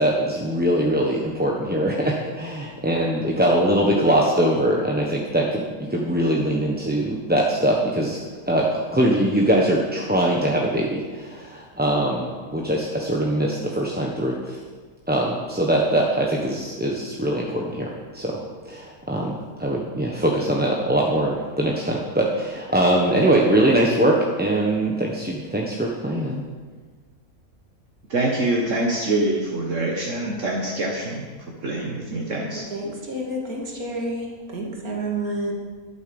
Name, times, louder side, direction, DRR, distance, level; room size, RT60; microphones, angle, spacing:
voice 1, 0.0-8.2 8.5-14.6 15.1-18.4 18.7-26.4, right 1 dB, 10° right, -2 dB, 1.0 m, -22 dB
voice 2, 28.1-31.3 31.6-32.6, right 2 dB, 60° right, -1 dB, 1.8 m, -25 dB
voice 3, 32.5-34.3 34.5-35.5, right 1 dB, 80° right, -1 dB, 2.8 m, -29 dB
12.0 x 9.1 x 7.0 m, 1.5 s
omnidirectional pair, 1.5 m